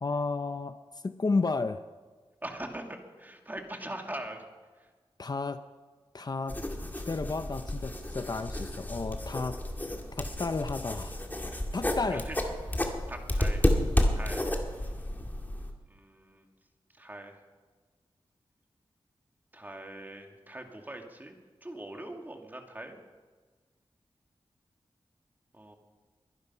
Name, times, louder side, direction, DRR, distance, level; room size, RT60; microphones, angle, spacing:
voice 1, 0.0-0.8 1.0-1.9 5.2-5.6 6.1-6.6 7.1-9.9 10.2-11.2 11.7-12.3, left 3 dB, 45° left, 10 dB, 0.6 m, -32 dB
voice 2, 2.4-4.4 4.8-4.9 12.1-12.4 12.7-13.6 14.1-14.4 14.7-15.0 15.9-16.4 17.0-17.4 19.5-21.3 21.6-23.0 25.5-25.7, right 1 dB, 20° right, 3 dB, 2.2 m, -42 dB
sound 1, 6.5-15.7, left 1 dB, 20° left, 2.2 m, -31 dB
22.5 x 11.0 x 5.6 m, 1.4 s
wide cardioid pair, 90°, 10 cm